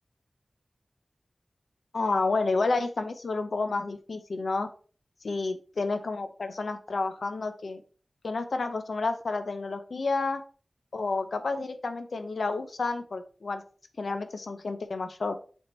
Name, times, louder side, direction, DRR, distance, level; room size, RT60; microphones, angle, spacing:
voice 1, 1.9-4.7 5.2-7.8 8.2-10.4 10.9-13.6 14.0-15.4, left 3 dB, 90° left, 8 dB, 0.7 m, -30 dB
6.9 x 3.6 x 4.3 m, 0.39 s
wide cardioid pair, 80°, 0 cm